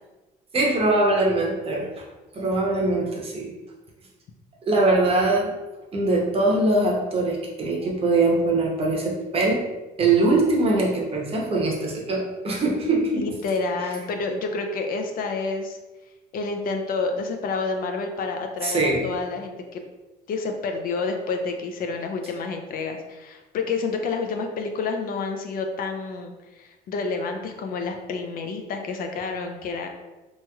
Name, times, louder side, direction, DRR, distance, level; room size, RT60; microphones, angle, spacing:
voice 1, 0.5-1.8 2.3-3.5 4.7-5.5 5.9-9.6 10.0-13.2 18.6-19.0, right 2 dB, 35° right, -2 dB, 0.8 m, -22 dB
voice 2, 13.1-15.8 16.3-19.8 20.3-29.9, left 4 dB, 60° left, 4 dB, 0.4 m, -29 dB
3.0 x 2.8 x 2.3 m, 1.1 s
cardioid pair, 110°, 17 cm